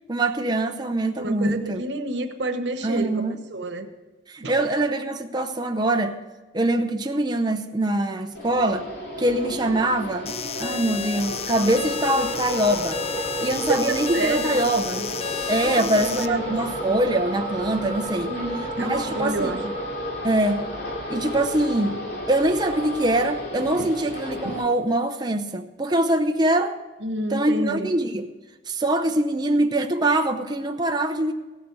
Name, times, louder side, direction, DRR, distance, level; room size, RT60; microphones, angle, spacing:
voice 1, 0.1-1.8 2.8-3.4 4.3-6.2 6.5-8.9 9.2-13.0 13.4-15.1 15.5-18.3 18.8-19.7 20.2-20.7 21.1-22.0 22.3-26.8 27.3-28.3 28.7-31.3, right 1 dB, 25° right, 5 dB, 0.6 m, -23 dB
voice 2, 1.2-3.9 4.4-4.5 13.7-14.6 15.6-16.6 18.3-19.6 23.8-23.9 24.4-24.6 27.0-27.9, right 1 dB, 85° right, 7 dB, 1.1 m, -29 dB
sound 1, 8.3-24.6, equal, 65° left, 2.8 m, -32 dB
sound 2, 10.3-16.3, left 8 dB, 35° left, 0.4 m, -32 dB
16.5 x 7.3 x 6.7 m, 1.2 s
head